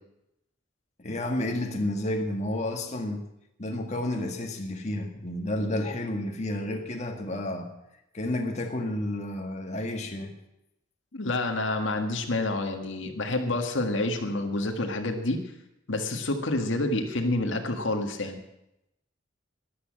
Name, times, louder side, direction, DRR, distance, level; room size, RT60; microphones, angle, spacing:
voice 1, 1.0-3.3 3.6-7.7 8.1-10.3, left 1 dB, 40° left, 3 dB, 1.8 m, -31 dB
voice 2, 11.1-15.4 15.9-18.4, left 2 dB, 85° left, 5 dB, 1.8 m, -28 dB
13.5 x 11.5 x 7.6 m, 0.85 s
head